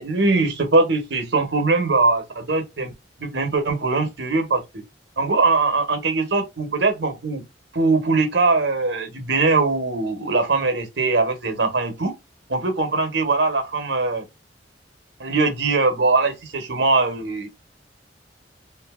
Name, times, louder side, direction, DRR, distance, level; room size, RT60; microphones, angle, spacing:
voice 1, 0.0-2.9 3.2-4.8 5.2-7.4 7.7-12.1 12.5-14.3 15.2-17.5, right 3 dB, 85° right, 1.0 m, -21 dB
2.7 x 2.7 x 2.4 m
head